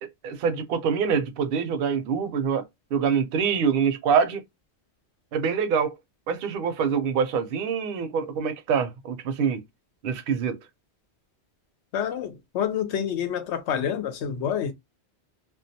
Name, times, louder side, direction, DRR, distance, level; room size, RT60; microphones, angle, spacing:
voice 1, 0.0-2.6 2.9-4.4 5.3-5.9 6.3-9.6 10.0-10.6, right 6 dB, 65° right, 0.7 m, -25 dB
voice 2, 11.9-14.7, left 8 dB, 90° left, 0.9 m, -28 dB
2.3 x 2.2 x 2.6 m
omnidirectional pair, 1.1 m